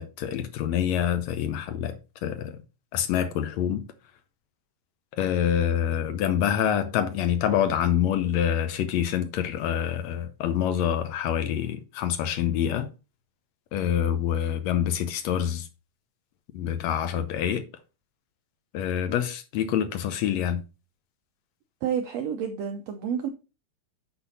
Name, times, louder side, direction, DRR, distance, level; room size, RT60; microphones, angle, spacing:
voice 1, 0.0-2.6 2.9-3.8 5.1-12.9 13.7-15.7 16.5-17.6 18.7-20.6, left 9 dB, 80° left, 1.5 m, -26 dB
voice 2, 21.8-23.3, right 8 dB, 90° right, 1.4 m, -29 dB
9.4 x 4.4 x 4.1 m
omnidirectional pair, 3.9 m